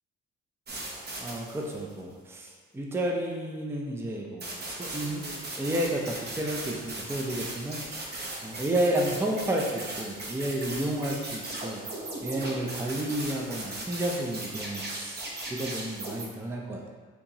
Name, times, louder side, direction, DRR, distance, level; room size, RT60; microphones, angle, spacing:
sound 1, 0.7-1.9 4.4-16.3, right 2 dB, 35° right, 0.8 m, -38 dB
voice 1, 1.2-7.8 8.4-11.8 12.2-16.9, right 1 dB, 10° right, -1 dB, 0.5 m, -31 dB
4.3 x 2.9 x 2.7 m, 1.5 s
cardioid pair, 90°, 30 cm